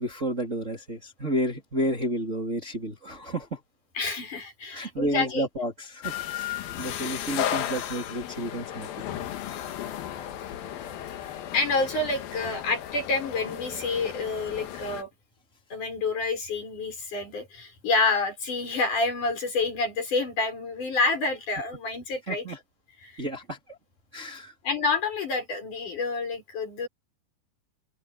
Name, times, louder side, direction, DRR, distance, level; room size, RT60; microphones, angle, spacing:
voice 1, 0.0-3.6 4.7-8.9 12.4-12.6 22.3-22.6 23.2-23.8 24.1-24.5, right 1 dB, 20° right, 3.1 m, -31 dB
voice 2, 4.0-5.5 11.5-15.1 15.7-22.5 23.0-23.3 24.6-26.9, left 3 dB, 55° left, 7.7 m, -28 dB
sound 1, 6.0-15.0, left 11 dB, 75° left, 3.2 m, -34 dB
open air
omnidirectional pair, 4.3 m